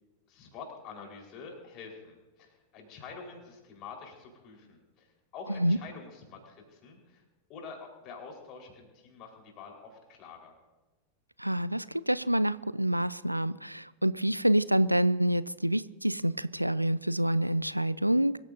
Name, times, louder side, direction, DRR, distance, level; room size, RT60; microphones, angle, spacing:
voice 1, 0.3-7.2 7.5-10.5, left 5 dB, 40° left, 1 dB, 4.7 m, -47 dB
voice 2, 11.4-18.4, right 1 dB, 90° right, 19 dB, 0.4 m, -27 dB
24.5 x 15.0 x 2.8 m, 1.1 s
figure-of-eight pair, 90°, 0 cm